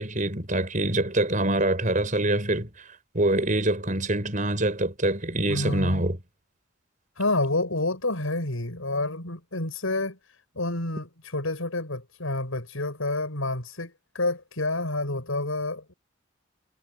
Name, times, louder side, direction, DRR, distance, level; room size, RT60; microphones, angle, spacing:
voice 1, 0.0-2.7 3.1-6.2, right 1 dB, 40° right, 7.0 m, -25 dB
voice 2, 5.5-6.1 7.2-10.2 10.6-15.9, left 2 dB, 80° left, 5.7 m, -29 dB
head